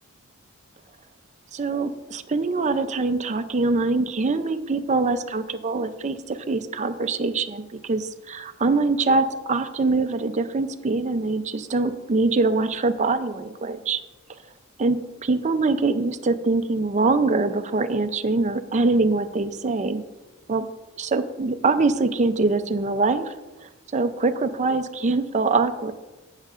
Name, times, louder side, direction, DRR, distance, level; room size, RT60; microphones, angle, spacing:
voice 1, 1.5-14.0 14.8-20.0 20.5-20.7 21.0-23.3 23.6-25.9, right 3 dB, 35° right, 9 dB, 0.5 m, -23 dB
16.5 x 6.5 x 2.5 m, 1.1 s
head